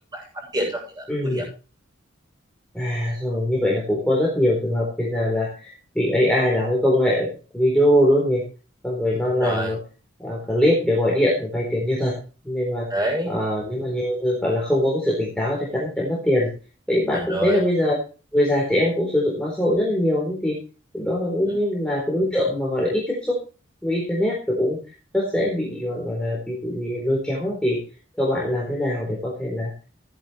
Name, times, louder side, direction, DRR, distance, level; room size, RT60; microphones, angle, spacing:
voice 1, 0.1-1.4 9.3-9.7 12.9-13.3 17.3-17.6 21.4-21.5, right 1 dB, 20° right, 0 dB, 7.4 m, -27 dB
voice 2, 1.1-1.4 2.7-7.3 7.5-8.4 8.8-9.8 10.2-12.1 12.4-12.9 13.3-16.5 16.9-18.0 18.3-20.6 20.9-23.4 23.8-24.8 25.1-27.8 28.2-29.7, left 1 dB, 5° left, -4 dB, 3.9 m, -22 dB
15.5 x 11.0 x 3.3 m, 0.36 s
head